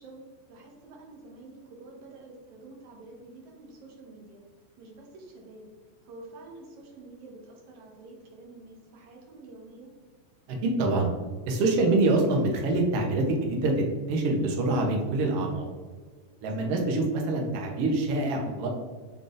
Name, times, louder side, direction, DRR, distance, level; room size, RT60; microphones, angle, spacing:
voice 1, 0.0-4.4 4.8-5.7 6.0-9.9 16.6-16.8, right 2 dB, 70° right, -1 dB, 2.1 m, -48 dB
voice 2, 10.5-11.1 11.5-15.7 16.4-18.7, right 2 dB, 90° right, 1 dB, 1.3 m, -25 dB
5.5 x 3.8 x 2.5 m, 1.4 s
omnidirectional pair, 3.8 m